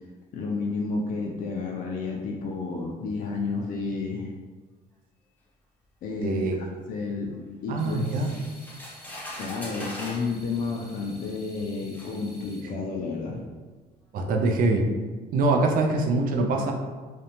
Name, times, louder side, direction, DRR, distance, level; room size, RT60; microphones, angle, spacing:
voice 1, 0.3-4.3 6.0-6.5 6.9-8.3 9.4-13.5, left 4 dB, 55° left, -2 dB, 0.4 m, -31 dB
voice 2, 6.2-6.6 7.7-8.3 14.1-14.9 15.3-16.7, right 2 dB, 55° right, 3 dB, 0.4 m, -24 dB
sound 1, 7.8-12.6, left 1 dB, 30° right, 1.1 m, -51 dB
sound 2, 8.0-10.3 11.2-11.3 11.9-12.1, left 1 dB, 10° left, 0.6 m, -40 dB
2.5 x 2.1 x 2.9 m, 1.4 s
cardioid pair, 110°, 17 cm